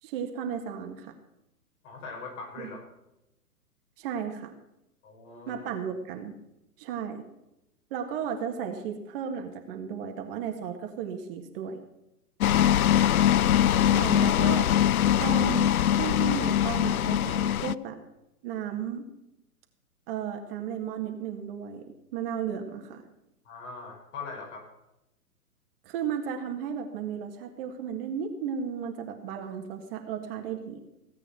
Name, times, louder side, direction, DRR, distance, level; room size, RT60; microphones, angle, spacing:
voice 1, 0.0-1.1 2.6-2.7 4.0-4.5 5.5-6.3 6.8-7.2 7.9-11.8 13.9-14.7 15.2-18.0 18.4-19.1 20.1-21.9 22.1-23.0 25.9-30.8, right 7 dB, 35° right, 4 dB, 1.9 m, -34 dB
voice 2, 1.8-2.8 5.0-5.6 23.4-24.6, left 4 dB, 50° left, 0 dB, 6.2 m, -41 dB
sound 1, 12.4-17.7, left 11 dB, 65° left, 0.6 m, -22 dB
17.0 x 8.8 x 5.8 m, 0.90 s
hypercardioid pair, 130°, 46 cm